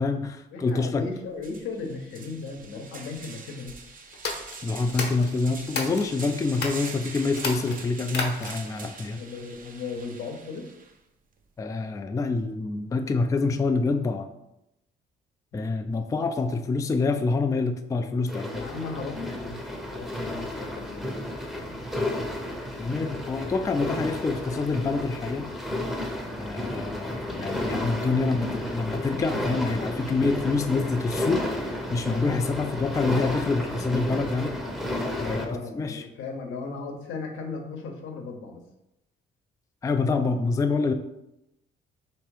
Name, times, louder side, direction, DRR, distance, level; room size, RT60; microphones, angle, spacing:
voice 1, 0.0-1.1 4.6-9.2 11.6-14.3 15.5-18.6 22.8-25.5 26.4-34.6 35.2-36.0 39.8-40.9, left 3 dB, 15° left, 7 dB, 0.3 m, -26 dB
voice 2, 0.5-3.7 9.2-10.7 18.5-19.6 19.9-21.3 27.8-28.1 35.2-38.6, left 4 dB, 85° left, 3 dB, 0.9 m, -36 dB
sound 1, 0.9-1.0 1.4-10.9, right 4 dB, 45° right, 0.6 m, -43 dB
sound 2, 4.1-6.1 6.5-6.9 7.3-8.7, left 3 dB, 60° left, 1.0 m, -33 dB
sound 3, 18.3-35.4, left 1 dB, ahead, 0.7 m, -32 dB
3.5 x 3.0 x 4.8 m, 0.87 s
cardioid pair, 90°, 20 cm